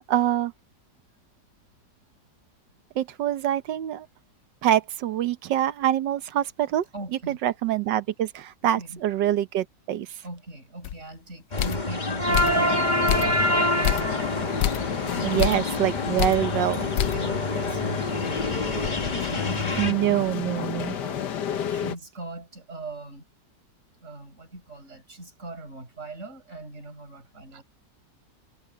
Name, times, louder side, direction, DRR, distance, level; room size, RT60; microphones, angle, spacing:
voice 1, 0.1-0.5 2.9-4.1 4.6-6.8 7.3-10.1 15.2-16.9 19.8-21.0, right 12 dB, 85° right, 1.6 m, -25 dB
voice 2, 6.9-7.4 8.8-9.0 10.2-14.5 15.0-15.4 16.8-19.6 20.5-20.6 20.9-21.2 21.7-23.2 24.0-27.6, right 2 dB, 40° right, 5.8 m, -40 dB
sound 1, 10.8-11.0 11.6-11.9 12.3-12.7 13.1-13.5 13.8-14.2 14.6-14.9 15.4-15.7 16.2-16.5 17.0-17.3 17.7-17.8 18.3-19.7, left 12 dB, 90° left, 1.3 m, -28 dB
sound 2, 11.5-19.9, left 1 dB, 25° left, 1.7 m, -27 dB
sound 3, 12.3-22.0, left 8 dB, 70° left, 1.8 m, -31 dB
omnidirectional pair, 1.9 m